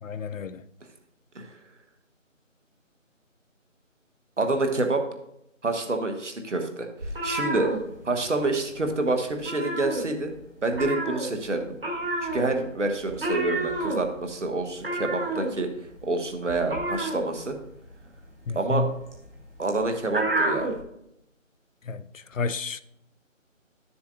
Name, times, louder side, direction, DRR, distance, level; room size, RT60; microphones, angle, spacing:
voice 1, 0.0-0.6 18.5-18.9 21.8-22.8, left 3 dB, 75° left, 0.6 m, -30 dB
voice 2, 4.4-5.0 5.6-6.9 7.2-7.7 8.0-10.3 10.6-11.8 12.2-15.7 16.0-17.6 18.5-18.8 19.6-20.7, right 2 dB, 65° right, 1.3 m, -27 dB
sound 1, 7.0-8.5 8.7-9.0 9.3-10.4 10.7-20.8, right 2 dB, 45° right, 1.7 m, -30 dB
12.0 x 6.9 x 2.6 m
figure-of-eight pair, 170°, 39 cm